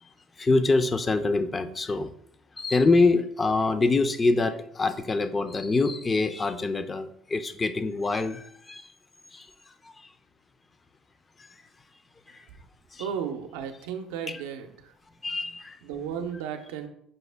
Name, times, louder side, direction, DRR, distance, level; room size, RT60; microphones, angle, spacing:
voice 1, 0.4-2.1 2.6-8.8 9.3-9.5 12.9-13.0 15.2-15.8, left 3 dB, 25° left, 10 dB, 0.4 m, -25 dB
voice 2, 13.0-14.9 15.8-16.9, right 7 dB, 90° right, 6 dB, 0.5 m, -34 dB
5.3 x 2.1 x 3.3 m, 0.67 s
supercardioid pair, 85°, 0 cm